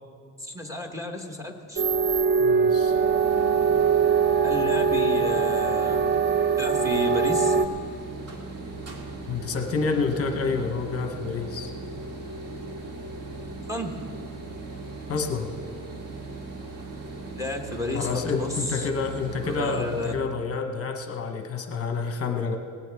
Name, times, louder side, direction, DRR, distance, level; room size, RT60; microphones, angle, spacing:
voice 1, 0.4-1.8 4.4-6.0 6.6-7.6 13.7-13.9 17.4-18.9 19.5-20.1, left 1 dB, 10° right, 3 dB, 1.1 m, -32 dB
sound 1, 1.8-7.7, right 5 dB, 30° right, 0.6 m, -22 dB
voice 2, 2.4-3.0 9.3-11.7 15.1-15.5 17.9-22.6, left 4 dB, 40° left, 5 dB, 0.9 m, -28 dB
sound 2, 2.4-20.2, right 2 dB, 45° right, 1.9 m, -38 dB
18.5 x 16.5 x 3.4 m, 2.4 s
cardioid pair, 145°, 35 cm